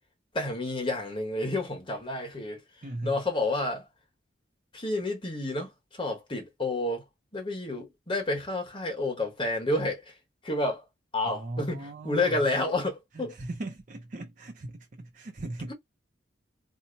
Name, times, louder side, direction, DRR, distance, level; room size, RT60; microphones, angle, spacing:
voice 1, 0.3-2.6 3.0-3.9 4.7-7.0 7.3-10.1 10.4-10.8 11.1-13.3, left 2 dB, 25° left, 1.3 m, -30 dB
voice 2, 2.8-3.2 11.2-12.4 13.1-15.7, right 2 dB, 45° right, 0.5 m, -38 dB
2.8 x 2.1 x 3.9 m
head